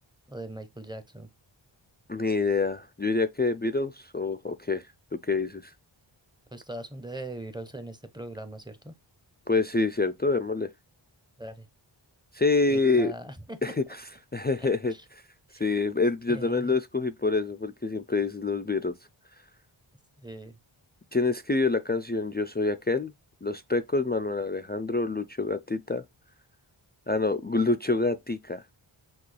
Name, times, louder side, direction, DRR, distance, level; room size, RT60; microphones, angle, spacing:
voice 1, 0.3-1.3 6.5-8.9 11.4-11.7 12.7-13.6 14.6-15.0 15.5-15.6 16.3-16.8 20.2-20.6, right 1 dB, 10° right, 0.7 m, -40 dB
voice 2, 2.1-4.8 5.1-5.7 9.5-10.7 12.3-13.1 13.6-13.8 14.3-14.9 15.6-19.0 21.1-23.1 23.4-26.0 27.1-28.6, left 3 dB, 25° left, 0.3 m, -26 dB
6.0 x 2.4 x 3.2 m
wide cardioid pair, 45°, 50 cm